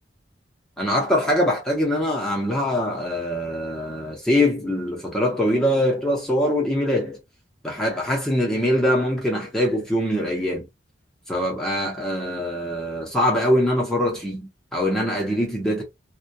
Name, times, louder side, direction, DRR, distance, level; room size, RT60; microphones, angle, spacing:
voice 1, 0.8-7.2 7.6-10.7 11.3-15.8, equal, 5° left, 0.7 m, -23 dB
2.2 x 2.1 x 2.6 m
head